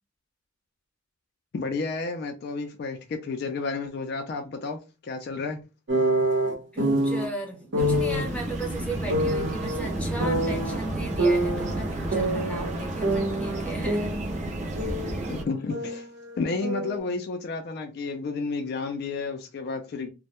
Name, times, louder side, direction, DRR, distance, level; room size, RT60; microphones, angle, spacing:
voice 1, 1.5-5.6 15.3-16.1 16.4-20.1, left 4 dB, 55° left, 0.3 m, -31 dB
sound 1, 5.9-7.3 7.7-8.2 9.1-10.7 11.2-12.8 13.0-15.2 15.4-17.0, right 1 dB, 65° right, 0.7 m, -26 dB
voice 2, 6.7-14.1, right 2 dB, 5° left, 0.6 m, -36 dB
sound 2, 7.8-15.4, right 1 dB, 35° right, 0.4 m, -31 dB
2.1 x 2.0 x 2.9 m
head